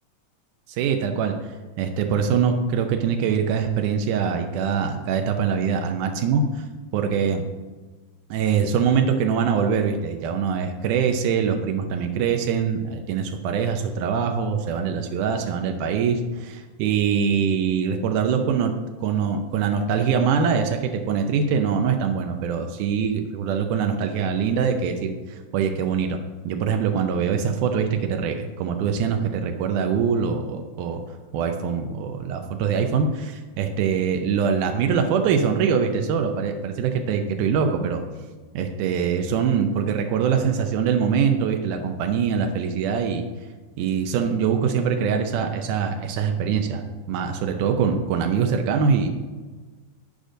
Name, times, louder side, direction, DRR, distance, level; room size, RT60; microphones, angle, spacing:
voice 1, 0.7-1.4 1.8-6.6 6.9-7.4 8.3-18.7 19.0-26.2 26.5-31.0 31.3-38.0 38.6-43.2 43.8-49.1, right 6 dB, 90° right, 4 dB, 2.1 m, -23 dB
14.5 x 5.0 x 2.6 m, 1.3 s
omnidirectional pair, 3.5 m